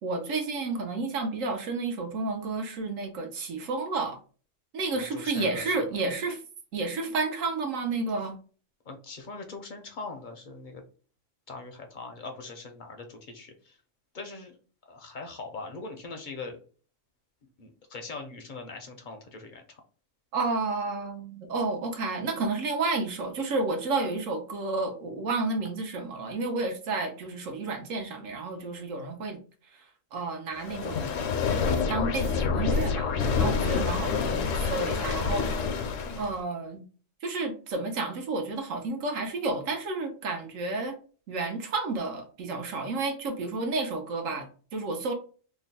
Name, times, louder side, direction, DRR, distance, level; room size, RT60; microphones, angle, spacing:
voice 1, 0.0-4.2 4.7-6.4 6.7-8.4 20.3-29.4 30.1-31.2 31.6-35.7 36.2-36.8 37.2-41.0 41.3-45.1, right 3 dB, 80° right, 4 dB, 1.2 m, -31 dB
voice 2, 4.9-5.8 8.9-10.8 11.5-13.8 14.1-14.6 14.9-16.6 17.6-19.8, left 3 dB, 50° left, 4 dB, 0.6 m, -41 dB
sound 1, 30.6-36.4, left 5 dB, 75° left, 0.9 m, -27 dB
3.0 x 2.3 x 4.0 m, 0.39 s
omnidirectional pair, 1.4 m